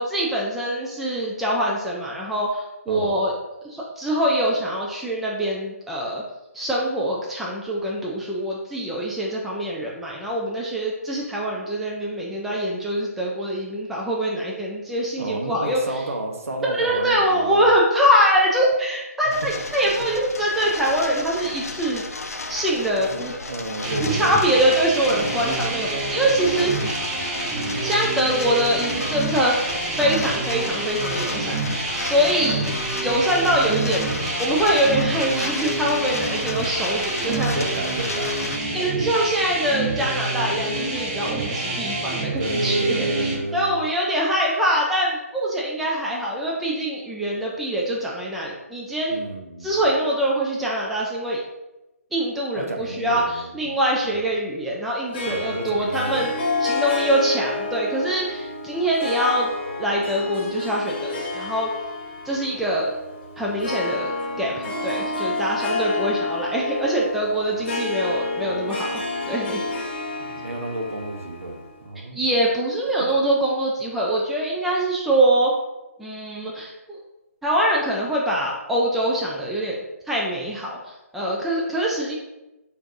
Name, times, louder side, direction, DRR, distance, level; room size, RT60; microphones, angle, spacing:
voice 1, 0.0-3.3 3.6-6.2 6.5-16.0 16.8-22.0 22.5-23.3 24.0-26.7 27.8-29.7 30.0-32.7 33.0-34.0 34.4-37.6 38.7-49.2 49.6-51.4 52.1-56.3 56.6-59.5 59.8-61.7 62.2-62.9 63.4-64.1 64.4-69.6 72.1-75.5 76.0-77.0 77.4-82.1, right 1 dB, ahead, -4 dB, 0.3 m, -24 dB
voice 2, 2.9-3.2 15.2-17.7 19.3-19.4 20.0-20.1 23.0-24.7 37.2-38.4 41.5-43.8 49.1-49.8 52.5-53.7 54.1-54.2 55.3-56.3 70.2-72.2 72.8-73.1, right 1 dB, 65° right, 2 dB, 0.9 m, -31 dB
sound 1, 19.3-38.6, left 3 dB, 80° left, 0.6 m, -33 dB
sound 2, 23.8-43.4, right 2 dB, 30° right, 0.9 m, -28 dB
Harp, 55.1-71.9, left 3 dB, 40° left, 0.9 m, -29 dB
6.1 x 2.6 x 2.6 m, 0.98 s
figure-of-eight pair, 140°, 8 cm